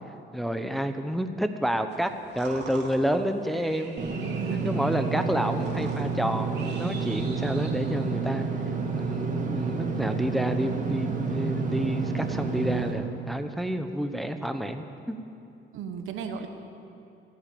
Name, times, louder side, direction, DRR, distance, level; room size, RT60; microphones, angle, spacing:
voice 1, 0.3-4.0 4.5-8.5 8.9-15.2, equal, ahead, 7 dB, 0.9 m, -29 dB
sound 1, 1.9-8.1, right 3 dB, 60° right, 2.8 m, -45 dB
Engine / Mechanisms, 4.0-12.9, right 5 dB, 40° right, 2.4 m, -30 dB
voice 2, 4.3-4.8 15.7-16.5, right 6 dB, 85° right, 6 dB, 1.3 m, -34 dB
16.0 x 10.0 x 8.6 m, 2.7 s
cardioid pair, 90°, 20 cm